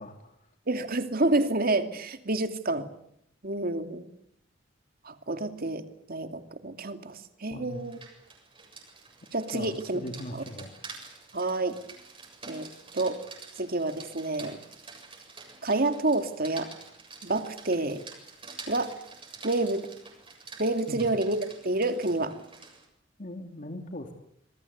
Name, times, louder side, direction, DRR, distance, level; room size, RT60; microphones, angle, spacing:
voice 1, 0.0-0.5 7.5-7.9 9.5-10.8 20.9-21.1 23.2-24.1, equal, 45° left, 5 dB, 2.6 m, -40 dB
voice 2, 0.7-2.9 3.4-4.1 5.0-8.0 9.3-10.0 11.3-11.8 12.5-13.2 13.6-14.6 15.6-16.7 17.2-18.0 18.7-19.0 19.4-19.9 20.6-22.3, right 2 dB, 50° right, 8 dB, 2.6 m, -28 dB
Rain, 7.7-22.9, right 4 dB, 30° right, 7.3 m, -47 dB
27.5 x 23.0 x 8.2 m, 0.71 s
head